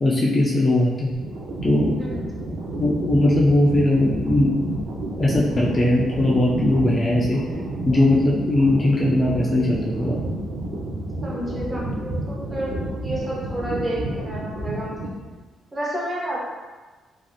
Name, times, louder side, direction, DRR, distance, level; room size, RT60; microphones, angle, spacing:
voice 1, 0.0-1.1 1.6-1.9 2.8-4.5 5.2-7.4 7.9-10.2, left 1 dB, 25° left, -4 dB, 0.3 m, -19 dB
sound 1, 1.1-15.4, right 1 dB, 80° right, 0.5 m, -30 dB
voice 2, 2.0-2.3 11.2-12.7 13.0-15.1 15.7-16.4, right 1 dB, 20° right, -5 dB, 0.7 m, -30 dB
3.2 x 2.5 x 2.2 m, 1.3 s
cardioid pair, 140°, 0 cm